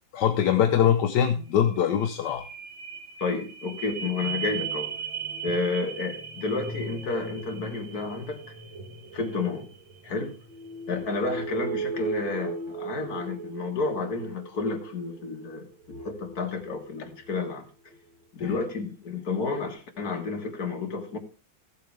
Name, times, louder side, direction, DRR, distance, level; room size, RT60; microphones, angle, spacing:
voice 1, 0.1-2.5 18.4-18.5, left 9 dB, 65° left, 1.3 m, -23 dB
sound 1, 1.5-17.4 17.9-18.0, right 4 dB, 70° right, 2.2 m, -37 dB
voice 2, 3.2-4.9 5.4-8.4 9.1-9.7 10.0-10.4 10.9-17.7 18.3-21.2, left 3 dB, 50° left, 2.1 m, -31 dB
15.0 x 7.8 x 3.4 m
omnidirectional pair, 2.2 m